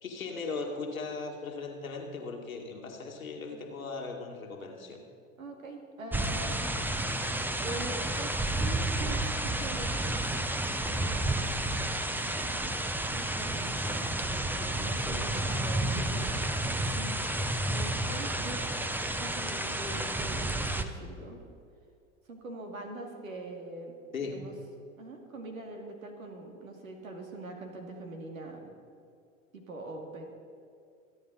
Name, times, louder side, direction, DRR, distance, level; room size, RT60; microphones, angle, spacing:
voice 1, 0.0-5.0 15.1-15.3 19.4-20.1 24.1-24.5, left 4 dB, 85° left, 1 dB, 2.1 m, -39 dB
voice 2, 5.4-7.0 7.6-10.1 10.8-12.8 13.1-14.1 14.5-18.6 19.2-21.4 22.3-23.9 24.2-24.5 25.0-28.7 29.5-30.2, right 2 dB, 85° right, 2 dB, 2.5 m, -43 dB
sound 1, 6.1-20.8, right 1 dB, 5° right, 0.8 m, -31 dB
27.0 x 10.0 x 4.0 m, 2.4 s
figure-of-eight pair, 85°, 40 cm